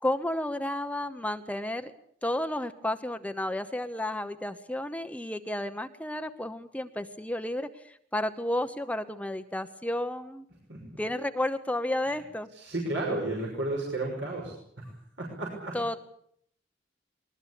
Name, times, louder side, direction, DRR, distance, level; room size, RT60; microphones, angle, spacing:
voice 1, 0.0-1.9 2.2-10.4 11.0-12.5 15.7-16.1, left 1 dB, 10° left, 9 dB, 0.9 m, -32 dB
voice 2, 12.5-14.9 15.2-15.8, right 2 dB, 70° right, -2 dB, 6.0 m, -33 dB
22.0 x 19.5 x 8.4 m, 0.68 s
head